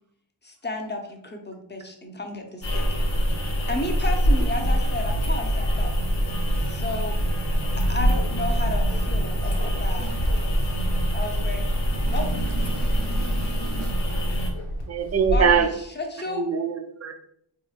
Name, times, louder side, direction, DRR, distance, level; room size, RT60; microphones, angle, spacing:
voice 1, 0.4-3.1 3.7-5.9 6.7-7.2 7.8-10.1 10.4-10.6 11.1-11.6 12.1-12.3 15.3-16.5, left 2 dB, 20° left, 3 dB, 0.6 m, -33 dB
sound 1, 2.6-14.5, equal, 55° left, 0.9 m, -24 dB
Bark, 7.6-15.6, equal, 90° left, 0.9 m, -31 dB
voice 2, 10.0-10.4 12.0-14.0, right 3 dB, 75° right, 2 dB, 0.8 m, -39 dB
voice 3, 14.9-15.7 16.4-17.1, right 6 dB, 35° right, 7 dB, 0.4 m, -22 dB
3.6 x 2.9 x 2.4 m, 0.71 s
wide cardioid pair, 45°, 49 cm